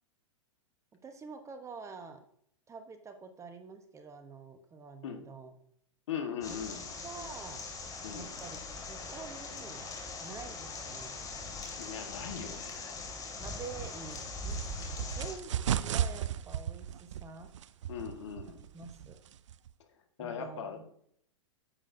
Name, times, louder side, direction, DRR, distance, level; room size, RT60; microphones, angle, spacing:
voice 1, 1.0-2.2 2.7-5.5 6.4-7.7 8.1-8.6 8.9-9.8 10.2-11.2 13.4-14.6 15.1-17.5 18.7-19.2 20.2-20.9, right 5 dB, 20° right, 7 dB, 1.1 m, -47 dB
voice 2, 6.1-6.8 8.0-8.3 11.8-13.0 17.9-18.6 20.2-20.9, left 8 dB, 65° left, 5 dB, 1.7 m, -39 dB
sound 1, 6.4-15.3, left 4 dB, 20° left, 2.5 m, -42 dB
sound 2, 13.6-19.7, right 10 dB, 70° right, 0.5 m, -36 dB
9.9 x 8.5 x 2.7 m, 0.67 s
hypercardioid pair, 110°, 16 cm